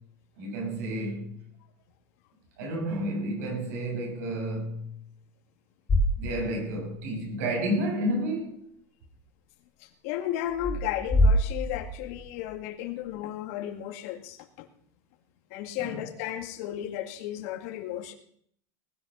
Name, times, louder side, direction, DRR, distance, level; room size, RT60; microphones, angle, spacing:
voice 1, 0.4-1.3 2.6-4.9 6.2-8.6 15.8-16.0, right 1 dB, 80° right, 7.5 m, -31 dB
sound 1, 5.9-6.9 7.2-7.3 10.5-12.5, equal, 20° left, 5.0 m, -26 dB
voice 2, 9.8-14.7 15.5-18.1, left 12 dB, 65° left, 2.1 m, -34 dB
19.5 x 10.5 x 5.6 m
cardioid pair, 170°, 8 cm